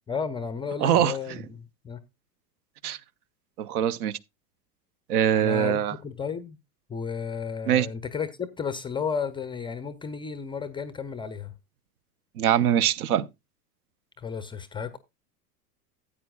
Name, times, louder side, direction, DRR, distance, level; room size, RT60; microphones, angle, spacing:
voice 1, 0.1-2.0 5.3-6.6 6.9-11.5 14.2-15.0, left 6 dB, 10° left, 0.4 m, -33 dB
voice 2, 0.8-1.1 2.8-3.0 3.6-4.1 5.1-5.9 7.7-7.9 12.4-13.3, right 10 dB, 65° right, 0.7 m, -22 dB
15.0 x 8.6 x 2.3 m
hypercardioid pair, 95°, 48 cm